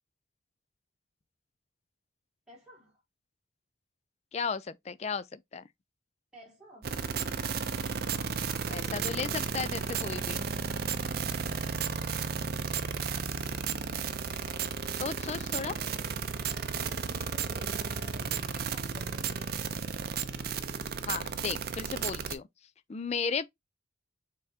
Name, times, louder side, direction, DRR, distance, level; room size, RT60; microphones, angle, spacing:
voice 1, 2.5-3.0 6.3-6.9 16.5-19.5, left 1 dB, 5° right, 1.2 m, -53 dB
voice 2, 4.3-5.6 8.7-10.5 15.0-15.7 21.1-22.5 22.9-23.5, left 5 dB, 35° left, 0.4 m, -35 dB
sound 1, 6.8-22.3, right 6 dB, 50° right, 0.5 m, -33 dB
5.3 x 3.6 x 2.7 m
head